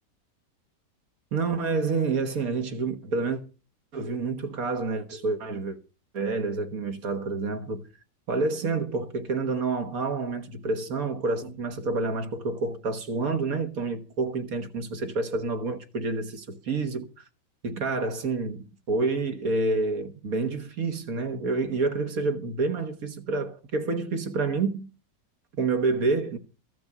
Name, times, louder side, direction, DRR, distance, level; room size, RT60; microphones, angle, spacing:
voice 1, 1.3-3.4 3.9-5.8 6.1-7.8 8.3-17.1 17.6-24.9 25.6-26.4, right 3 dB, 55° right, 1.8 m, -28 dB
15.0 x 6.1 x 7.9 m
omnidirectional pair, 1.8 m